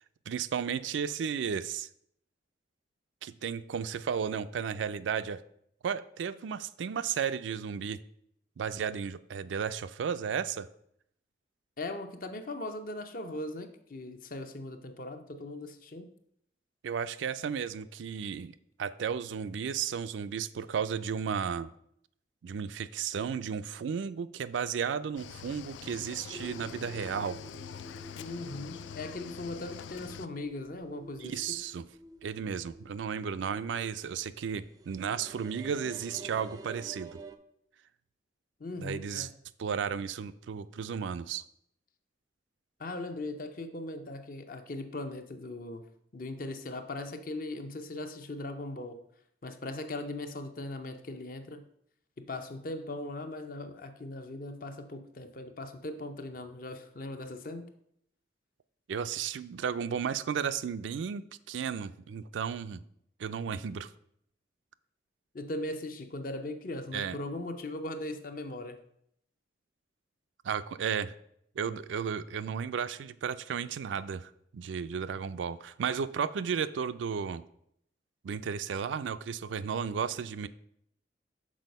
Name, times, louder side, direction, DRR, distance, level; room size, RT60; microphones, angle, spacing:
voice 1, 0.3-1.9 3.2-5.4 5.8-8.0 8.6-10.7 16.8-21.7 22.4-27.4 31.2-31.8 32.2-37.2 38.8-39.3 39.6-41.4 58.9-62.8 63.2-63.9 66.9-67.2 70.4-71.1 71.6-77.4 78.2-80.5, right 7 dB, 90° right, 13 dB, 0.4 m, -34 dB
voice 2, 11.8-16.1 28.2-31.3 38.6-39.3 42.8-45.8 46.1-49.0 49.4-51.6 52.2-57.7 65.3-68.8, left 2 dB, 50° left, 8 dB, 0.6 m, -39 dB
Cricket / Waves surf, 25.2-30.3, left 8 dB, 85° left, 0.3 m, -45 dB
sound 1, 26.3-37.4, right 1 dB, 20° right, 0.4 m, -49 dB
6.2 x 4.2 x 5.3 m, 0.72 s
head